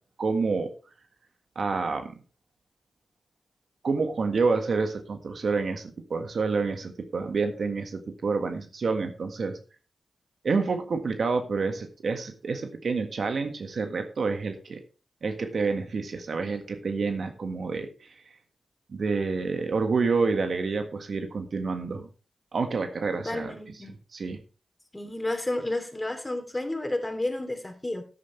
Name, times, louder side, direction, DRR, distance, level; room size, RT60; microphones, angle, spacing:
voice 1, 0.2-0.7 1.5-2.1 3.8-9.6 10.4-14.8 15.2-17.9 18.9-22.1 22.5-23.5 24.1-24.4, right 4 dB, 70° right, 7 dB, 1.6 m, -28 dB
voice 2, 23.2-24.0 24.9-28.0, left 1 dB, 20° left, 6 dB, 3.0 m, -31 dB
13.0 x 9.7 x 3.2 m, 0.34 s
cardioid pair, 45°, 0 cm